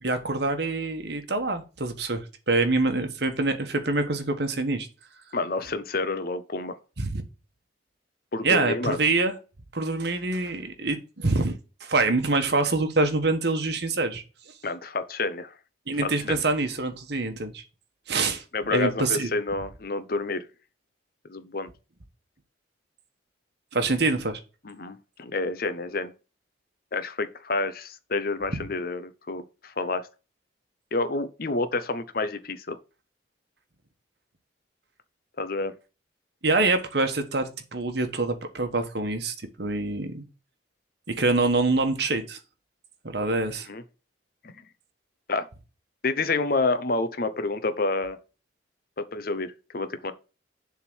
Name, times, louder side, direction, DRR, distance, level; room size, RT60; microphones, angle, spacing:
voice 1, 0.0-4.9 7.0-7.2 8.4-9.3 9.7-11.5 11.8-14.2 15.9-17.6 18.1-18.4 18.7-19.3 23.7-24.4 36.4-40.2 41.1-42.4 43.0-43.7, right 3 dB, 60° right, 1.3 m, -25 dB
voice 2, 5.3-6.7 8.3-9.0 14.6-15.5 16.0-16.4 18.5-20.4 21.3-21.7 24.6-26.1 26.9-30.1 30.9-32.8 35.4-35.7 43.7-43.8 44.4-44.6 45.3-45.5 46.0-48.2 49.0-50.1, left 3 dB, 50° left, 0.8 m, -29 dB
7.1 x 3.8 x 6.2 m
head